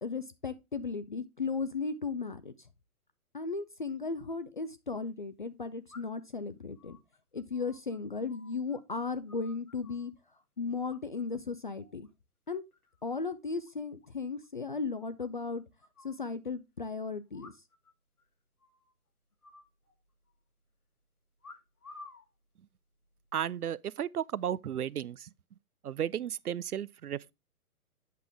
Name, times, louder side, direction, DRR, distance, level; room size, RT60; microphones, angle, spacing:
voice 1, 0.0-2.5 3.3-7.0 7.3-10.1 10.6-12.1 12.5-12.6 13.0-15.6 16.0-17.5, left 4 dB, 35° left, 0.4 m, -36 dB
sound 1, 4.1-4.2 5.9-6.3 6.8-8.8 9.0-10.1 10.9-11.4 11.7-12.1 12.5-13.0 13.3-13.4 13.6-13.7 14.0-14.1 14.4-14.5 15.2-16.2 17.3-17.9 18.2-18.3 18.6-18.9 19.4-20.3 21.4-22.3 23.0-23.4, left 3 dB, 75° left, 1.7 m, -54 dB
voice 2, 23.3-25.3 25.8-27.3, right 9 dB, 80° right, 0.5 m, -34 dB
8.3 x 6.2 x 3.4 m
figure-of-eight pair, 125°, 44 cm